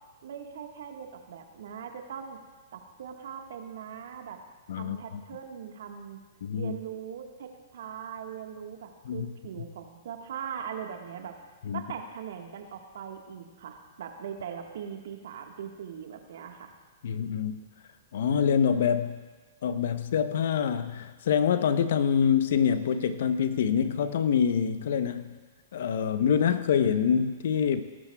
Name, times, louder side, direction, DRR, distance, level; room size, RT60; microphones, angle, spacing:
voice 1, 0.2-2.4 2.7-4.4 4.7-6.2 6.5-11.3 11.7-16.7, right 8 dB, 65° right, 4 dB, 1.5 m, -40 dB
voice 2, 4.7-5.2 6.4-6.7 9.0-9.3 9.6-9.7 11.6-11.8 17.0-17.6 18.1-19.2 19.6-25.3 25.7-27.8, left 7 dB, 65° left, 11 dB, 0.8 m, -26 dB
19.0 x 12.5 x 2.3 m, 1.4 s
hypercardioid pair, 115°, 0 cm